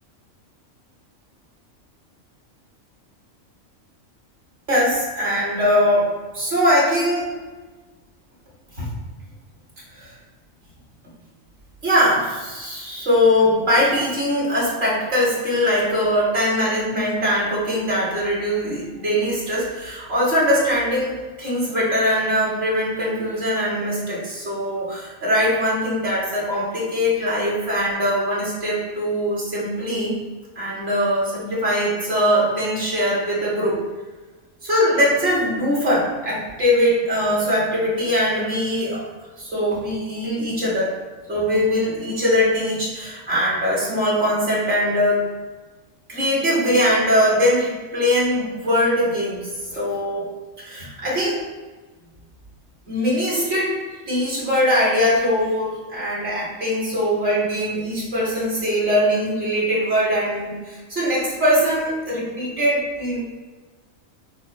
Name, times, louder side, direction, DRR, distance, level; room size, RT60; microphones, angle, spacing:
voice 1, 4.7-7.3 8.8-8.9 9.9-10.1 11.8-30.2 30.6-33.8 34.6-39.0 39.4-40.9 41.3-45.2 46.1-50.3 50.6-51.4 52.9-53.8 54.1-63.2, equal, 45° right, -6 dB, 2.3 m, -21 dB
6.8 x 2.8 x 5.4 m, 1.3 s
omnidirectional pair, 1.4 m